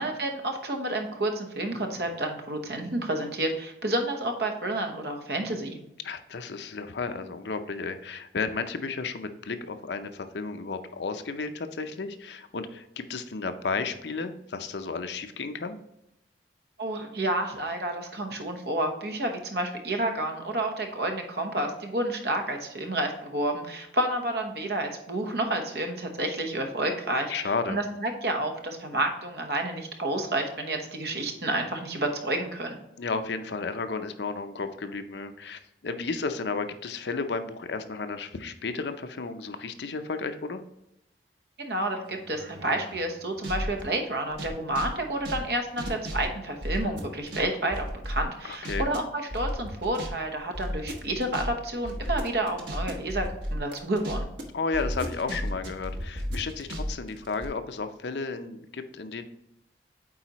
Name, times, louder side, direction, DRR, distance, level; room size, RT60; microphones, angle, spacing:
voice 1, 0.0-5.8 16.8-32.8 41.6-54.3, right 1 dB, 65° right, 4 dB, 1.0 m, -30 dB
voice 2, 6.0-15.8 27.3-27.8 33.0-40.6 48.4-48.9 54.5-59.2, left 4 dB, 75° left, 9 dB, 0.6 m, -33 dB
sound 1, 42.1-43.8 44.3-47.4 47.7-49.0 49.3-50.1 50.4-54.4 54.7-57.5, equal, 85° right, 1.2 m, -34 dB
8.6 x 4.1 x 3.0 m, 0.84 s
head